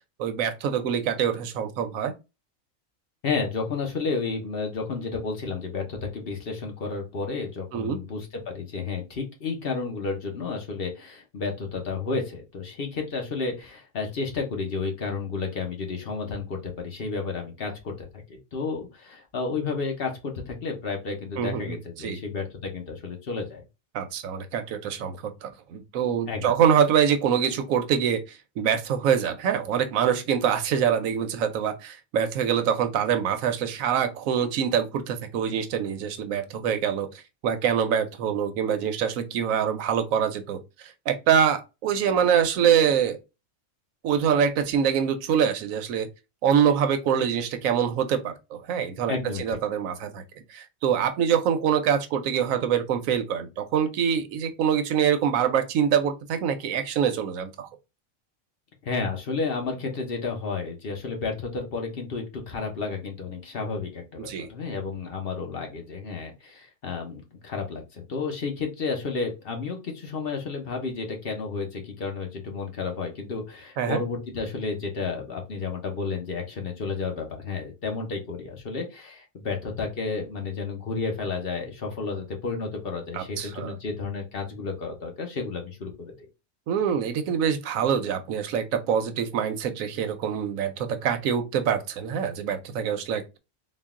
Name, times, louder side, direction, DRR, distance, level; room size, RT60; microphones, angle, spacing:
voice 1, 0.2-2.1 7.7-8.0 21.4-22.2 23.9-28.2 28.6-37.1 37.4-40.6 41.1-43.2 44.0-46.1 46.4-50.2 50.5-57.7 64.3-64.5 73.8-74.0 83.1-83.7 86.7-93.4, right 8 dB, 85° right, 1.1 m, -25 dB
voice 2, 3.2-23.6 26.3-26.6 49.1-49.6 58.8-86.1, left 4 dB, 50° left, 1.1 m, -32 dB
3.8 x 2.3 x 3.6 m
omnidirectional pair, 1.4 m